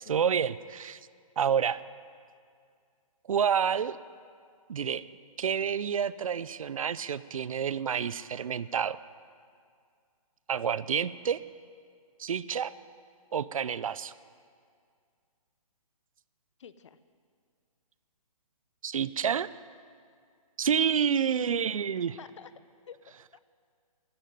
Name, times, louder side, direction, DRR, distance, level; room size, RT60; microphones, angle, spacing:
voice 1, 0.1-1.0 1.4-1.8 3.3-4.0 4.7-5.0 5.4-9.0 10.5-11.4 12.2-12.7 13.3-14.1 18.8-19.5 20.6-22.2, right 7 dB, 65° right, 17 dB, 0.6 m, -28 dB
voice 2, 16.6-17.0 21.5-21.6 22.2-22.5 22.9-23.4, left 7 dB, 55° left, 14 dB, 0.8 m, -49 dB
13.0 x 11.5 x 9.5 m, 2.2 s
hypercardioid pair, 165°, 19 cm